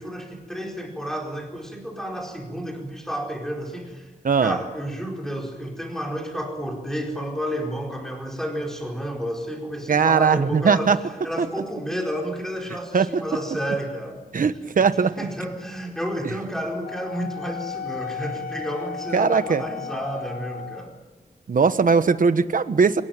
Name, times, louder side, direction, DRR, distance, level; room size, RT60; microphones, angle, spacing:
voice 1, 0.0-4.1 4.4-10.9 11.2-14.2 15.2-20.9, equal, 5° left, 0 dB, 4.6 m, -31 dB
voice 2, 4.2-4.6 9.9-11.0 11.4-11.5 12.9-13.2 14.3-15.3 19.1-19.6 21.5-23.0, right 5 dB, 60° right, 11 dB, 1.2 m, -19 dB
Wind instrument woodwind instrument, 16.8-21.0, left 7 dB, 60° left, 0.7 m, -35 dB
27.0 x 18.0 x 9.1 m, 1.2 s
wide cardioid pair, 155°, 16 cm